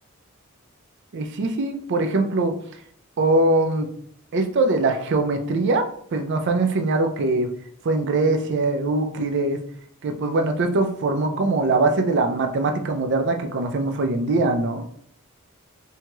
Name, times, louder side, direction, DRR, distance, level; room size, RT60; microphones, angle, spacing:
voice 1, 1.1-2.5 3.2-3.9 4.3-5.8 6.1-7.5 7.8-9.6 10.0-14.8, right 2 dB, 55° right, 6 dB, 0.4 m, -22 dB
3.0 x 2.7 x 2.2 m, 0.62 s
head